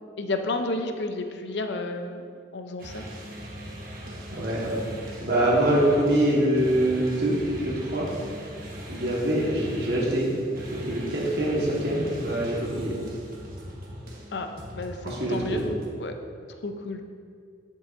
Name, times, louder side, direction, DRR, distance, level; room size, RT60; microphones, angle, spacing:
voice 1, 0.2-2.2 2.5-3.0 14.3-14.5 14.7-15.6 16.0-16.1 16.6-17.0, left 2 dB, 75° left, 6 dB, 0.6 m, -31 dB
sound 1, 2.8-15.9, equal, 50° right, 1.3 m, -40 dB
voice 2, 4.3-4.8 5.2-8.1 8.9-10.3 10.7-13.0 15.0-15.6, right 1 dB, 65° right, -5 dB, 1.5 m, -24 dB
10.0 x 7.6 x 2.6 m, 2.2 s
head